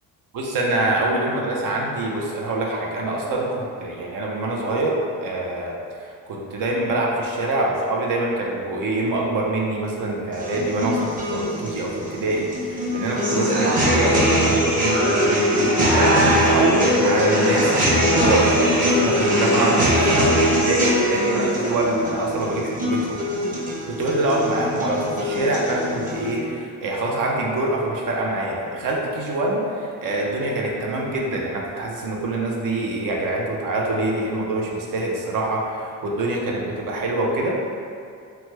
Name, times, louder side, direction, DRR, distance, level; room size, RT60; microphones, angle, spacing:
voice 1, 0.3-15.4 15.6-23.2 23.9-37.6, right 2 dB, 65° right, -2 dB, 0.6 m, -25 dB
sound 1, 10.3-26.3, equal, 25° right, 0.7 m, -21 dB
2.9 x 2.2 x 3.2 m, 2.4 s
cardioid pair, 100°, 35 cm